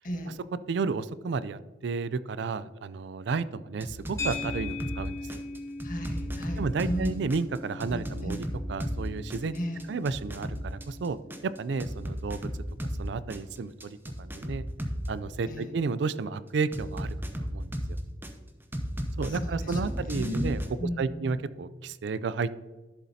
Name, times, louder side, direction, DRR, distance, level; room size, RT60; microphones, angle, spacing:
voice 1, 0.0-0.4 5.8-7.2 7.9-8.4 9.5-9.9 15.5-15.7 19.2-21.4, equal, 45° left, 2 dB, 1.6 m, -35 dB
voice 2, 0.7-5.4 6.6-9.6 9.9-11.2 11.4-12.4 13.0-14.6 15.1-17.7 19.2-20.6 21.0-22.6, right 4 dB, 65° right, 16 dB, 0.4 m, -32 dB
sound 1, 3.8-5.0 5.3-9.0 9.3-13.0 13.3-15.1 16.7-18.3 18.7-20.7, equal, 10° right, 0.8 m, -34 dB
sound 2, 4.2-12.6, left 3 dB, 15° left, 2.1 m, -41 dB
11.5 x 7.1 x 2.8 m, 1.3 s
head